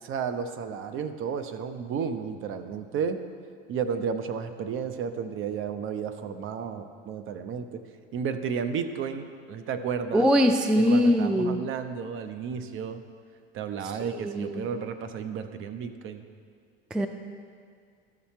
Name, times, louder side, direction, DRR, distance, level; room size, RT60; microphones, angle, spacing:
voice 1, 0.0-3.2 3.7-7.8 8.1-10.3 10.8-13.0 13.5-16.2, right 6 dB, 45° right, 8 dB, 0.7 m, -32 dB
voice 2, 10.1-11.6 14.0-14.7 16.9-17.1, equal, 5° right, 6 dB, 0.3 m, -22 dB
12.5 x 5.7 x 4.3 m, 2.2 s
hypercardioid pair, 85°, 30 cm